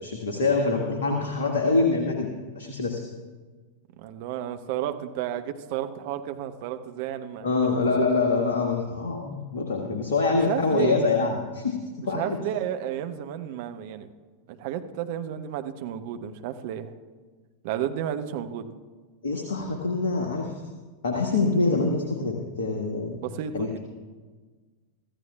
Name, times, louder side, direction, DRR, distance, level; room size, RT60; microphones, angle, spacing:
voice 1, 0.0-3.0 7.4-11.8 12.0-12.4 19.2-20.5 21.0-23.2 23.5-23.8, left 3 dB, 65° left, 2 dB, 1.5 m, -25 dB
voice 2, 4.0-7.6 10.3-11.1 12.1-14.1 14.5-16.9 17.6-18.7 23.2-23.8, right 10 dB, 50° right, 8 dB, 0.9 m, -32 dB
25.5 x 14.0 x 2.4 m, 1.4 s
figure-of-eight pair, 90°, 0 cm